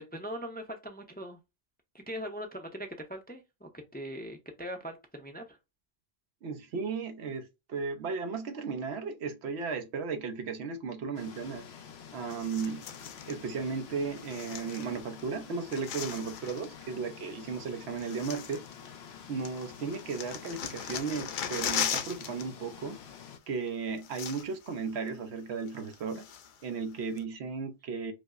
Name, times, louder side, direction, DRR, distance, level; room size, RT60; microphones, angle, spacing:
voice 1, 0.0-1.4 1.9-5.6, equal, 15° left, 0.4 m, -41 dB
voice 2, 6.4-11.6 12.1-12.9 13.2-18.6 19.3-23.0 23.5-26.3 26.6-28.1, right 5 dB, 90° right, 1.0 m, -35 dB
sound 1, 11.2-23.4, left 7 dB, 80° left, 0.9 m, -48 dB
sound 2, 12.3-13.4 14.2-15.2 15.5-16.7 17.6-17.7 18.0-19.2 19.5-22.5 22.7-22.9 23.7-23.8 24.0-24.7 25.1-25.2 25.7-26.7 27.2-27.3, left 8 dB, 60° left, 0.6 m, -38 dB
4.9 x 2.0 x 2.4 m
omnidirectional pair, 1.1 m